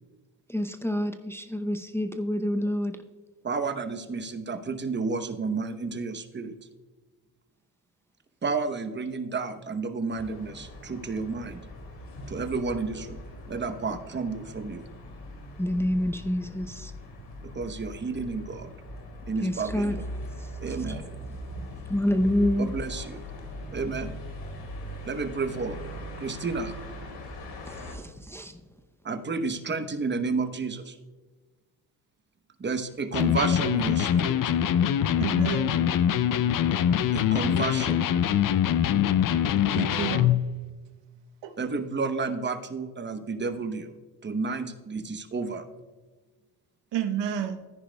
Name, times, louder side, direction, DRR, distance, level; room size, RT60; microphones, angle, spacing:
voice 1, 0.5-3.0 15.6-16.9 19.4-20.0 20.4-20.5 20.9-21.0 21.9-22.7 27.7-28.6, left 1 dB, 5° left, 0.6 m, -28 dB
voice 2, 3.4-6.5 8.4-11.6 12.3-13.2 13.5-14.8 17.4-18.7 19.2-20.0 20.6-21.1 22.6-23.2 23.7-24.1 25.1-25.8 26.2-26.7 29.0-31.0 32.6-34.4 37.1-38.0 41.6-43.9 44.2-45.6, right 4 dB, 25° right, 0.9 m, -31 dB
sound 1, 10.1-27.9, equal, 85° left, 2.8 m, -40 dB
Electric guitar, 33.1-40.4, left 9 dB, 50° left, 0.6 m, -23 dB
voice 3, 35.2-35.8 39.7-40.4 41.4-41.6 46.9-47.6, right 9 dB, 75° right, 1.0 m, -30 dB
14.0 x 10.0 x 2.3 m
cardioid pair, 85°, 43 cm